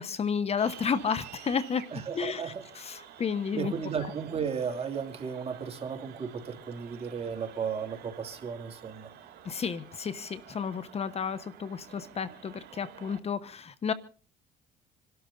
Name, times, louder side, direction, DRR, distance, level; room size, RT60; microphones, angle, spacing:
voice 1, 0.0-1.8 2.1-3.7 9.4-13.9, left 6 dB, 40° left, 14 dB, 1.1 m, -32 dB
sound 1, 0.6-13.2, right 10 dB, 70° right, 3.2 m, -50 dB
voice 2, 1.9-2.6 3.5-9.1, right 6 dB, 35° right, 4 dB, 2.8 m, -34 dB
27.0 x 12.5 x 3.9 m, 0.38 s
cardioid pair, 110°, 17 cm